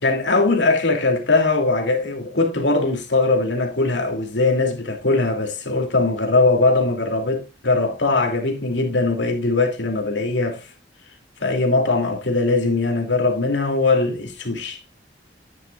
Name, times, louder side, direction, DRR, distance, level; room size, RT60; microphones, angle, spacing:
voice 1, 0.0-10.6 11.4-14.8, left 3 dB, 85° left, 2.5 m, -20 dB
11.0 x 9.5 x 2.4 m
head